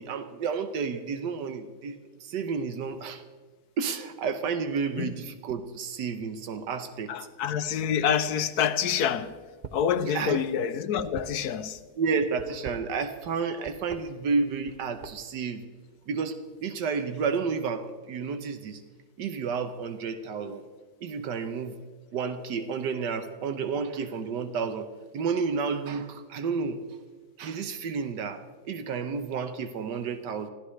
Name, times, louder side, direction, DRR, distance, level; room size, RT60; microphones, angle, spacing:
voice 1, 0.0-3.2 3.8-7.1 10.0-10.4 12.0-15.6 16.1-18.8 19.2-20.6 21.0-21.8 22.1-24.9 25.1-26.8 27.4-30.5, right 5 dB, 85° right, 1.6 m, -31 dB
voice 2, 7.1-9.3 9.7-11.8, left 8 dB, 70° left, 1.2 m, -27 dB
sound 1, 9.5-9.9 10.2-11.8 12.3-13.3 13.6-14.0 14.5-15.4, right 6 dB, 55° right, 0.5 m, -43 dB
26.0 x 15.0 x 3.2 m
omnidirectional pair, 1.8 m